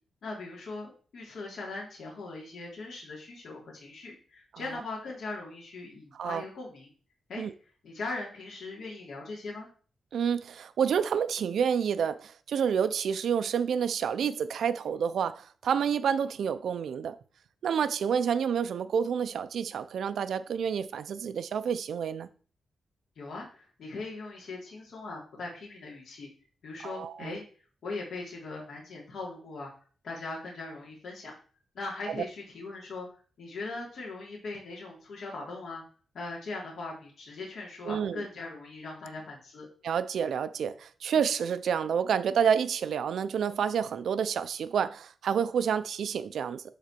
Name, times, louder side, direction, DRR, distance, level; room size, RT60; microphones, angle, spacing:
voice 1, 0.2-6.9 7.3-7.4 7.8-9.7 23.2-26.3 26.6-27.4 27.8-29.7 30.0-31.3 31.7-35.8 36.1-39.7, left 3 dB, 65° left, 3.8 m, -40 dB
voice 2, 10.1-17.2 17.6-22.3 26.8-27.4 37.9-38.2 39.8-46.6, right 7 dB, 75° right, 0.8 m, -29 dB
12.0 x 4.2 x 6.9 m
wide cardioid pair, 155°, 0 cm